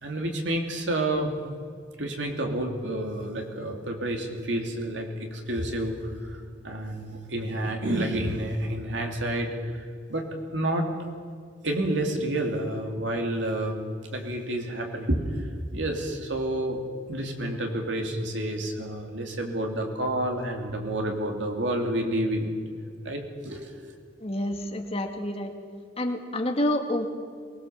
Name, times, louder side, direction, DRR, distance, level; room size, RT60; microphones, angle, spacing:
voice 1, 0.0-1.3 2.0-10.2 10.5-10.9 11.6-13.8 14.1-15.2 15.7-16.8 17.1-22.5 23.0-23.8, right 1 dB, 70° right, 2 dB, 2.9 m, -29 dB
voice 2, 24.2-25.5 26.0-27.1, left 1 dB, 30° left, 4 dB, 1.8 m, -28 dB
23.0 x 20.0 x 7.2 m, 2.1 s
head